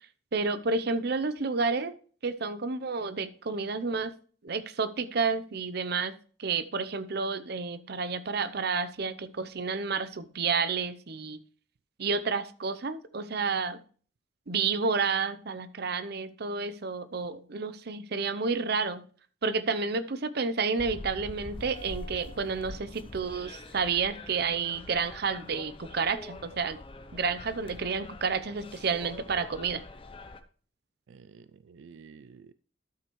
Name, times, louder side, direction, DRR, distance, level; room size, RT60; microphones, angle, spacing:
voice 1, 0.3-1.9 2.2-4.1 4.4-6.1 6.4-11.4 12.0-13.8 14.5-19.0 19.4-26.8 27.1-29.8, right 4 dB, 60° right, 13 dB, 0.7 m, -30 dB
sound 1, 20.8-30.4, left 2 dB, 30° left, 0.7 m, -44 dB
voice 2, 31.1-32.5, right 5 dB, 90° right, 14 dB, 0.4 m, -51 dB
12.5 x 6.8 x 3.1 m, 0.43 s
head